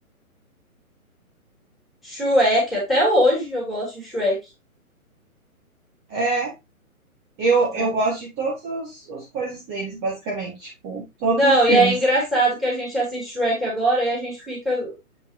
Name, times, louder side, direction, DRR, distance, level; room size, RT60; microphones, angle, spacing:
voice 1, 2.0-4.4 7.7-7.9 11.3-14.9, equal, ahead, -3 dB, 3.2 m, -21 dB
voice 2, 6.1-6.5 7.4-11.9, right 3 dB, 25° right, -3 dB, 1.8 m, -25 dB
7.5 x 5.4 x 2.8 m, 0.23 s
figure-of-eight pair, 135°, 44 cm